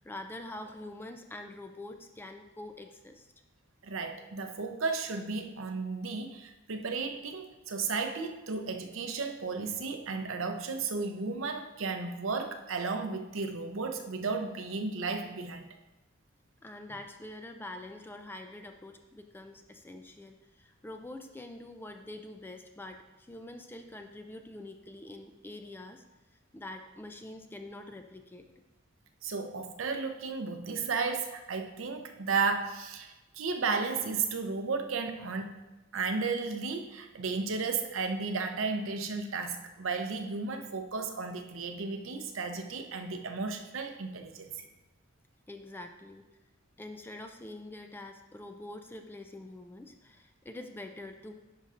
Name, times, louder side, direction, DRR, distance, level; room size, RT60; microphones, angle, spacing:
voice 1, 0.0-3.3 16.6-26.0 26.5-28.5 45.5-46.3 46.8-51.3, left 1 dB, 10° left, 5 dB, 0.3 m, -45 dB
voice 2, 3.8-15.6 29.2-35.6 35.9-44.5, right 4 dB, 75° right, 6 dB, 0.7 m, -34 dB
10.5 x 5.6 x 2.5 m, 1.1 s
head